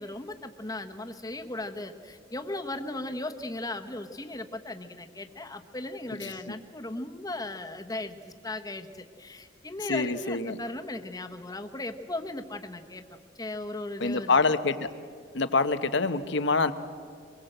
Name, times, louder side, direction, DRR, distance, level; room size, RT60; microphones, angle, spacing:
voice 1, 0.0-13.0 13.3-14.5, left 2 dB, 20° left, 6 dB, 1.2 m, -37 dB
voice 2, 6.2-6.6 9.9-10.6 14.0-14.9 15.3-16.7, left 3 dB, 65° left, 11 dB, 1.1 m, -26 dB
24.0 x 22.0 x 8.0 m, 2.2 s
head